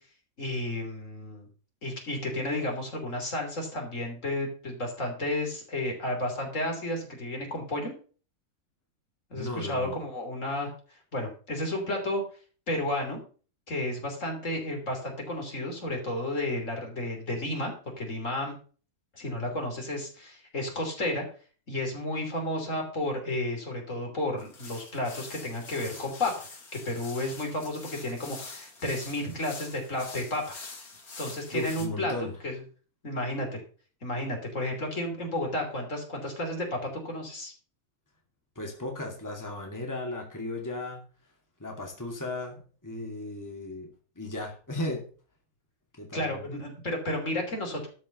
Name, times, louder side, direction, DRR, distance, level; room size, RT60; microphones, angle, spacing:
voice 1, 0.4-1.5 1.8-7.9 9.3-10.7 11.1-12.2 12.7-13.2 13.7-18.6 19.1-21.2 21.7-26.5 26.7-30.4 31.2-32.1 32.4-32.6 33.0-33.6 34.0-37.5 46.1-47.9, left 1 dB, 60° left, 2 dB, 3.5 m, -32 dB
voice 2, 9.4-10.0 31.5-32.3 38.6-41.0 41.6-42.6 42.8-45.0 46.0-46.5, left 2 dB, 10° left, 1 dB, 2.4 m, -35 dB
sound 1, 24.4-31.9, left 4 dB, 90° left, 2.6 m, -45 dB
12.5 x 5.4 x 6.5 m, 0.40 s
omnidirectional pair, 1.5 m